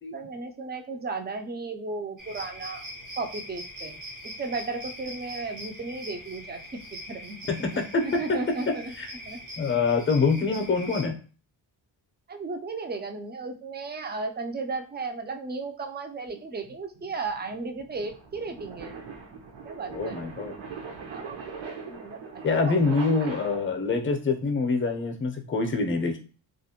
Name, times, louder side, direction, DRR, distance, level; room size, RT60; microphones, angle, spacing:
voice 1, 0.1-2.8 3.2-7.4 7.7-8.9 9.3-9.4 12.3-18.9 19.6-20.3 21.1-21.5 21.9-22.8, right 3 dB, 25° right, 5 dB, 0.4 m, -35 dB
sound 1, 2.2-11.1, equal, 80° right, 1.0 m, -42 dB
voice 2, 7.6-8.4 8.7-9.1 9.6-11.2 19.9-20.5 22.4-26.2, left 4 dB, 25° left, 4 dB, 0.6 m, -25 dB
sound 2, 16.3-23.9, right 5 dB, 65° right, 0.8 m, -41 dB
2.4 x 2.1 x 2.8 m, 0.37 s
cardioid pair, 60°, 47 cm